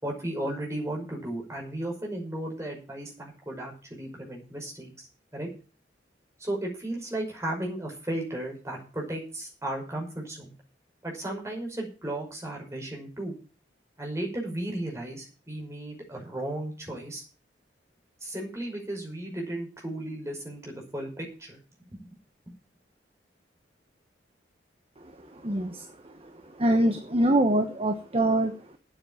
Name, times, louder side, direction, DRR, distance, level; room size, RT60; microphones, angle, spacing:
voice 1, 0.0-5.5 6.4-10.5 11.0-13.3 14.0-17.2 18.2-21.6 21.9-22.0, right 1 dB, 15° right, -1 dB, 5.6 m, -35 dB
voice 2, 25.4-25.9 26.6-28.8, right 1 dB, 30° right, 6 dB, 1.2 m, -24 dB
9.0 x 8.9 x 8.8 m, 0.36 s
head